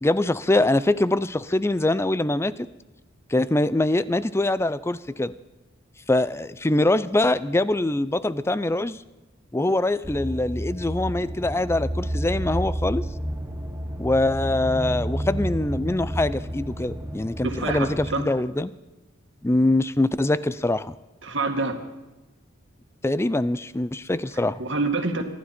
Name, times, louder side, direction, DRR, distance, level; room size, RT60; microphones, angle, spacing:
voice 1, 0.0-2.7 3.3-5.3 6.1-9.0 9.5-13.0 14.0-18.7 19.4-20.9 23.0-24.6, left 2 dB, 15° left, 16 dB, 0.5 m, -23 dB
sound 1, 10.0-18.1, right 1 dB, 10° right, 1.2 m, -30 dB
voice 2, 17.4-18.2 21.2-21.8 24.6-25.2, right 3 dB, 65° right, 5 dB, 2.0 m, -26 dB
26.5 x 12.0 x 4.4 m, 1.1 s
head